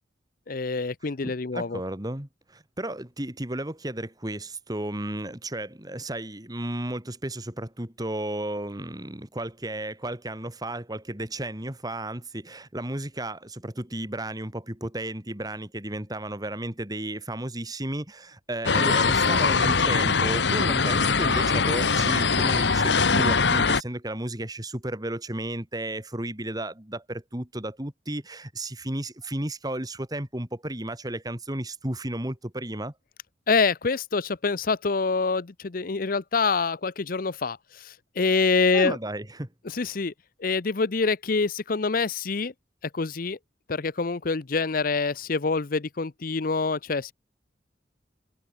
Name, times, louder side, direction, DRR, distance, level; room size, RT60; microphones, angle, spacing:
voice 1, 0.5-1.8 33.5-39.0 39.6-40.1 40.4-42.5 42.9-43.4 43.7-47.1, left 4 dB, 50° left, 0.7 m, -26 dB
voice 2, 1.2-32.9 38.7-39.5, right 1 dB, 20° right, 2.5 m, -33 dB
sound 1, 18.6-23.8, left 4 dB, 75° left, 1.3 m, -22 dB
head